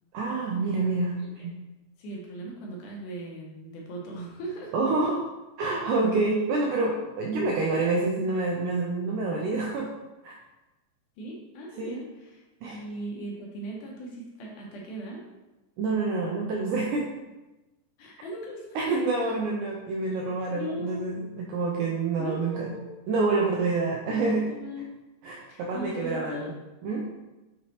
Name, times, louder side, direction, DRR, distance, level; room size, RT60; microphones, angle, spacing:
voice 1, 0.1-1.1 1.4-1.5 4.7-5.2 5.6-9.9 10.2-10.4 11.8-12.0 12.6-12.8 15.8-17.1 18.8-22.7 23.1-24.5 25.2-26.5 26.8-27.0, right 3 dB, 85° right, -2 dB, 1.7 m, -27 dB
voice 2, 2.0-4.7 11.2-12.4 12.7-15.2 18.0-19.0 20.5-21.1 22.2-22.9 24.1-24.9 25.5-26.5, right 1 dB, 75° left, -2 dB, 2.1 m, -38 dB
6.1 x 2.9 x 2.9 m, 1.1 s
omnidirectional pair, 3.9 m